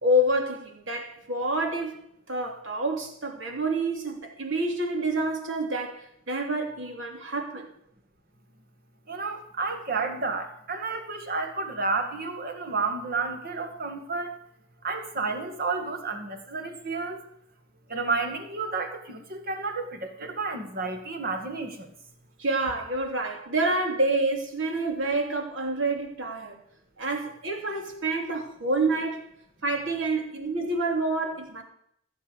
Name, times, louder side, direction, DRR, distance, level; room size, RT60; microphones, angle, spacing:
voice 1, 0.0-2.0 2.3-7.7 22.4-26.6 27.0-29.2 29.6-31.6, right 1 dB, 70° right, 3.0 m, -28 dB
voice 2, 9.1-14.3 14.8-17.3 17.9-21.9, right 4 dB, 50° right, 2.1 m, -31 dB
15.5 x 7.2 x 6.9 m
head